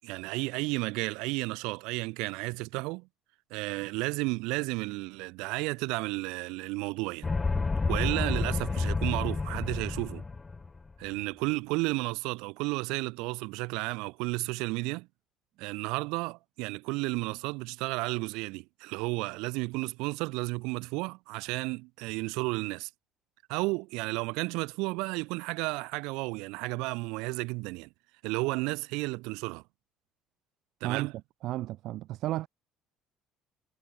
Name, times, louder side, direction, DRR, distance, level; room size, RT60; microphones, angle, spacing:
voice 1, 0.0-3.1 3.5-7.3 7.9-10.2 11.0-15.1 15.6-22.9 23.5-27.9 28.2-29.6 30.8-31.1, right 26 dB, 90° right, 7.4 m, -32 dB
sound 1, 7.2-10.8, left 3 dB, 20° left, 2.0 m, -30 dB
voice 2, 31.4-32.5, right 15 dB, 65° right, 3.7 m, -33 dB
cardioid pair, 125°, 0 cm